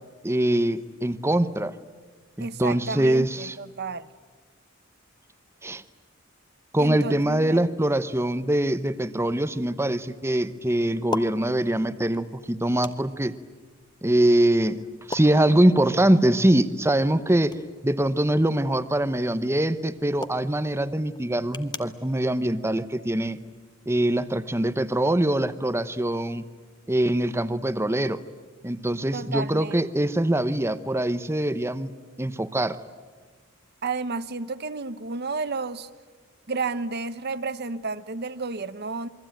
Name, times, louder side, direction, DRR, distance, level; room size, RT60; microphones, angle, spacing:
voice 1, 0.2-1.7 2.4-3.6 5.6-5.8 6.7-13.3 14.0-14.8 15.1-23.4 23.9-26.5 26.9-28.2 28.6-31.9 32.2-32.8, right 1 dB, 15° right, 12 dB, 0.9 m, -23 dB
voice 2, 2.4-4.1 6.8-7.6 29.1-30.1 33.8-35.9 36.5-39.1, right 4 dB, 55° right, 13 dB, 0.9 m, -31 dB
sound 1, 8.4-23.6, left 3 dB, 20° left, 1.2 m, -43 dB
28.0 x 23.0 x 9.1 m, 1.4 s
head